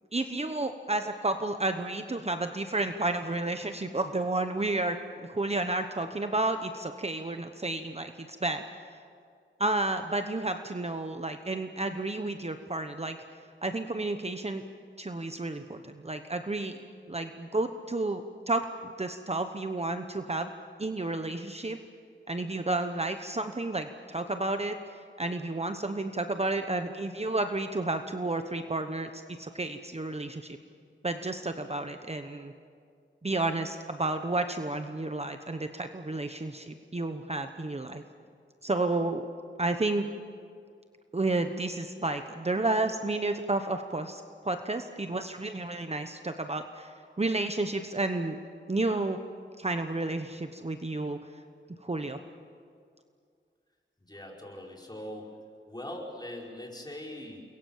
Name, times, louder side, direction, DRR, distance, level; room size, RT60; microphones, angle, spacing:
voice 1, 0.1-8.6 9.6-13.2 13.6-14.6 15.0-16.8 17.1-20.5 20.8-21.8 22.3-24.8 25.2-30.6 31.0-32.5 33.2-38.0 38.6-39.2 39.6-40.1 41.1-48.4 48.7-49.2 49.6-51.3 51.8-52.2, right 2 dB, 30° right, 7 dB, 1.1 m, -31 dB
voice 2, 54.0-55.3 55.7-57.4, left 1 dB, 20° left, -1 dB, 5.1 m, -41 dB
29.0 x 22.5 x 7.3 m, 2.2 s
wide cardioid pair, 80°, 20 cm